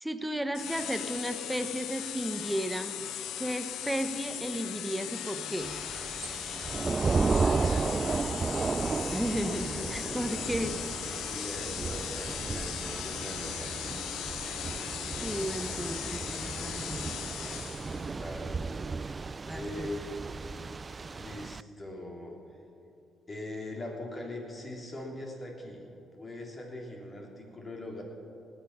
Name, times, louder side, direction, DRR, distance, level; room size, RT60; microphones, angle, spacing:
voice 1, 0.0-3.0 3.4-5.8 9.1-10.8 15.2-17.1 19.5-19.9, equal, 5° right, 8 dB, 0.9 m, -34 dB
sound 1, 0.5-18.1, left 10 dB, 80° left, 0.5 m, -38 dB
Thunder / Rain, 5.6-21.6, right 4 dB, 30° right, 0.3 m, -34 dB
voice 2, 7.0-8.8 9.5-10.8 11.2-13.7 17.8-18.6 19.5-20.0 21.1-22.6 23.3-25.9 26.2-28.0, left 1 dB, 30° left, 0 dB, 3.2 m, -41 dB
19.0 x 8.9 x 5.8 m, 2.8 s
cardioid pair, 90°, 0 cm